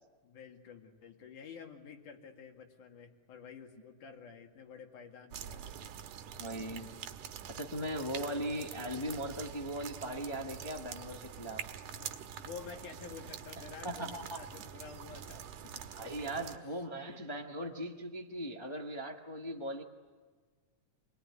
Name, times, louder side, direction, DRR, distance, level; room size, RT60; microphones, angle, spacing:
voice 1, 0.2-5.9 11.9-15.9 17.1-17.2, left 6 dB, 80° left, 3 dB, 3.7 m, -50 dB
sound 1, 5.3-16.6, right 9 dB, 90° right, 2.7 m, -46 dB
voice 2, 6.4-6.9 7.5-11.6 13.8-14.4 15.9-19.8, right 1 dB, 35° left, 2 dB, 0.4 m, -39 dB
28.0 x 20.5 x 9.7 m, 1.5 s
omnidirectional pair, 3.5 m